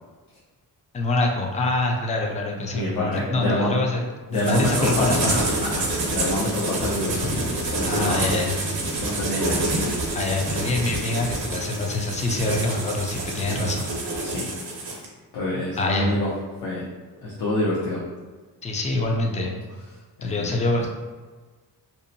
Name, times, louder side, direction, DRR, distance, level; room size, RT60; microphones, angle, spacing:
voice 1, 0.9-4.0 4.3-5.4 7.8-8.6 10.1-13.9 15.8-16.1 18.6-19.5 20.2-20.9, left 2 dB, 20° left, 1 dB, 0.3 m, -25 dB
voice 2, 2.7-3.7 4.3-8.3 9.0-9.6 14.2-14.5 15.3-16.3 16.6-16.9 17.2-18.0 20.2-20.5, left 1 dB, 70° left, -7 dB, 0.7 m, -27 dB
sound 1, 4.3-15.1, right 2 dB, 65° right, 0.7 m, -27 dB
2.7 x 2.1 x 2.6 m, 1.4 s
cardioid pair, 90°, 40 cm